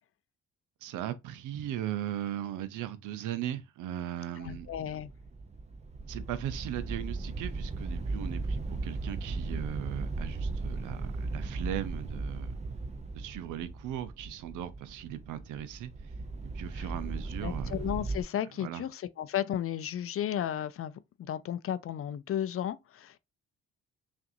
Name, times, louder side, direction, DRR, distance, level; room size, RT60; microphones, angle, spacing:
voice 1, 0.8-4.7 6.1-12.5 13.1-15.9 16.5-17.7 18.6-18.9, right 11 dB, 90° right, 0.6 m, -38 dB
voice 2, 4.4-5.1 16.8-16.9 17.4-23.2, left 10 dB, 50° left, 0.5 m, -34 dB
sound 1, 4.4-18.2, right 3 dB, 20° right, 0.6 m, -37 dB
5.7 x 2.6 x 2.6 m
cardioid pair, 90°, 30 cm